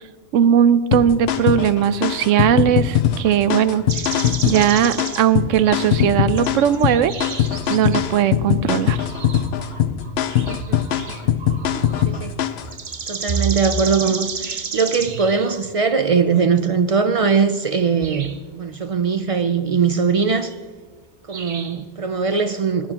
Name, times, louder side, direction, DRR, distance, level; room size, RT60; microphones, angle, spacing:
voice 1, 0.3-3.9 4.5-7.1 7.7-9.1, right 9 dB, 85° right, 0.9 m, -18 dB
sound 1, 0.9-12.7, left 10 dB, 65° left, 0.8 m, -21 dB
sound 2, 3.9-5.3 5.5-8.2 8.7-12.3 12.6-15.6 17.7-17.8 18.0-18.4 20.3-20.6 21.3-21.8, right 5 dB, 45° right, 0.9 m, -31 dB
voice 2, 10.5-11.3 12.1-12.3 13.1-20.5 21.3-22.9, right 5 dB, 60° right, 0.3 m, -21 dB
20.5 x 10.0 x 2.9 m
omnidirectional pair, 1.3 m